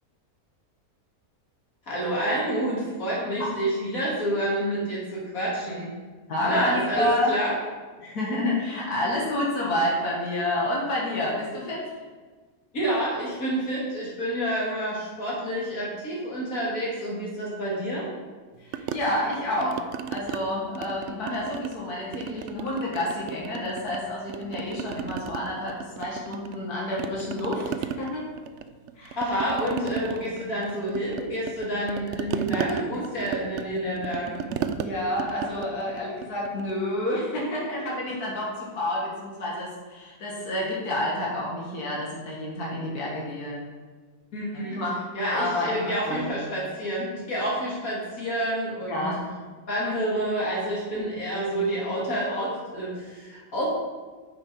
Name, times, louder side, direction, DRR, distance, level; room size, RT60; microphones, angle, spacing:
voice 1, 1.9-5.9 6.4-7.5 12.7-18.1 29.2-34.5 44.3-44.8 45.1-49.1 49.7-53.7, equal, 65° left, -5 dB, 2.8 m, -28 dB
voice 2, 6.3-7.3 8.0-11.9 18.6-27.7 28.0-28.3 29.0-29.2 34.8-43.6 44.5-44.9 45.3-46.3 48.8-49.2 52.1-52.4, left 1 dB, 85° left, -4 dB, 2.3 m, -29 dB
sound 1, 18.7-20.4 20.7-21.8 22.1-24.0 24.3-26.7 27.0-36.8, right 8 dB, 65° right, 0.7 m, -34 dB
9.7 x 6.6 x 4.7 m, 1.4 s
omnidirectional pair, 1.6 m